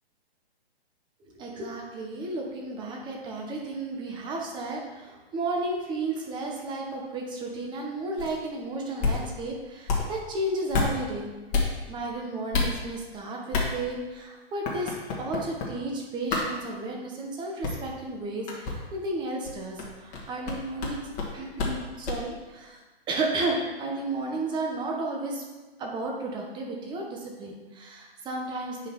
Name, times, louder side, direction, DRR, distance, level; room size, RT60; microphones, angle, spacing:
voice 1, 1.4-11.3 11.9-21.0 21.3-22.8 23.1-25.4 25.8-28.9, right 2 dB, 15° right, 0 dB, 1.2 m, -33 dB
sound 1, 8.2-8.4 8.9-9.3 9.9-10.1 10.7-11.0 11.5-11.7 12.5-12.7 13.5-13.7 14.6-15.7 16.3-16.4 17.6-17.9 18.5-18.8 19.4-21.8 22.0-22.2, left 4 dB, 25° left, 1.6 m, -27 dB
8.6 x 5.5 x 4.5 m, 1.2 s
hypercardioid pair, 140°, 31 cm